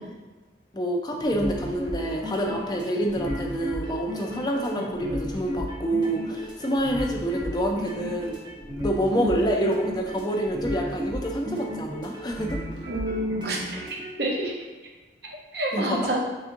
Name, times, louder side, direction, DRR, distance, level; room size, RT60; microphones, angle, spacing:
voice 1, 0.7-8.4 8.8-12.6 15.7-16.1, right 1 dB, 25° left, 0 dB, 0.5 m, -27 dB
sound 1, 1.2-14.1, left 1 dB, 25° right, 0.9 m, -34 dB
voice 2, 12.9-14.5 15.5-16.2, right 1 dB, 70° right, -1 dB, 0.8 m, -28 dB
7.0 x 2.6 x 2.6 m, 1.3 s
head